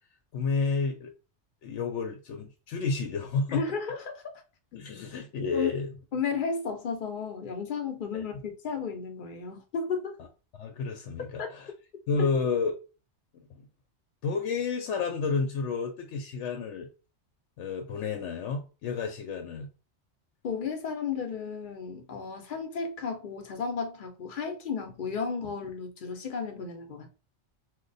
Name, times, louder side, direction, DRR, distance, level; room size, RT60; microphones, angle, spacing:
voice 1, 0.3-1.1 1.6-3.6 4.7-5.9 8.1-8.2 10.6-11.7 12.1-12.7 14.2-16.9 17.6-19.7, left 4 dB, 90° left, 0.9 m, -30 dB
voice 2, 3.5-4.2 5.5-5.7 6.1-10.2 11.4-11.5 20.4-27.1, left 5 dB, 50° left, 0.8 m, -33 dB
2.9 x 2.1 x 3.9 m
omnidirectional pair, 1.2 m